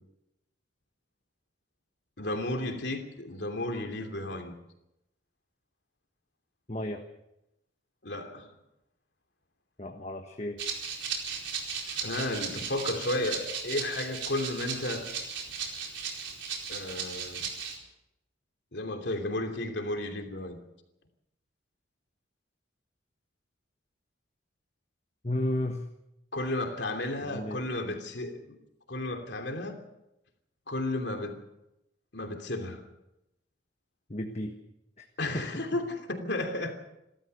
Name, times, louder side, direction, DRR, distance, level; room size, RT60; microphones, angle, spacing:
voice 1, 2.2-4.5 8.0-8.5 11.8-15.1 16.7-17.5 18.7-20.6 26.3-28.6 28.9-29.8 30.7-31.4 32.1-32.9 35.2-36.7, left 1 dB, 65° left, 4 dB, 3.0 m, -33 dB
voice 2, 6.7-7.0 9.8-10.6 25.2-25.9 27.2-27.6 34.1-34.5 35.0-35.1 35.3-35.4, left 1 dB, 35° left, 4 dB, 1.4 m, -33 dB
Rattle (instrument), 10.6-17.8, right 6 dB, 85° right, 4.5 m, -36 dB
28.5 x 13.5 x 6.9 m, 0.88 s
head